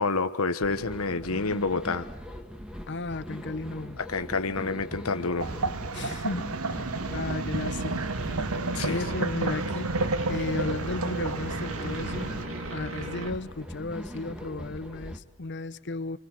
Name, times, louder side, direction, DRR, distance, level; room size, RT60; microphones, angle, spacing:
voice 1, 0.0-2.1 4.0-5.5 8.7-9.0, left 3 dB, 85° left, 1.3 m, -28 dB
sound 1, 0.6-15.2, equal, 5° right, 1.7 m, -41 dB
voice 2, 2.9-4.0 5.9-8.1 8.7-9.9 10.3-12.3 12.7-16.2, left 3 dB, 55° left, 0.9 m, -34 dB
sound 2, 5.4-12.5, right 3 dB, 85° right, 1.0 m, -31 dB
sound 3, 6.7-13.3, right 2 dB, 65° right, 2.9 m, -38 dB
29.0 x 25.5 x 6.5 m
head